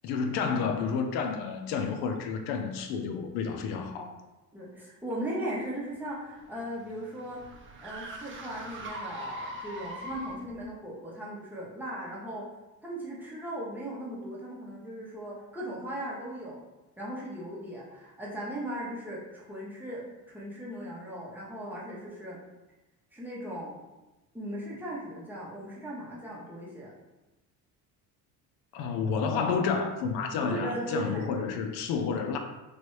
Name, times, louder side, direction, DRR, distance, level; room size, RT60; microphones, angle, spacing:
voice 1, 0.0-4.1 28.7-32.4, left 5 dB, 80° left, 5 dB, 0.5 m, -30 dB
voice 2, 4.5-12.5 12.8-16.6 17.0-22.4 23.1-23.7 24.3-26.9 30.3-31.6, right 1 dB, 5° right, -6 dB, 0.9 m, -38 dB
sound 1, 6.1-10.6, right 1 dB, 35° right, 0.5 m, -41 dB
3.2 x 2.5 x 3.1 m, 1.1 s
cardioid pair, 105°, 38 cm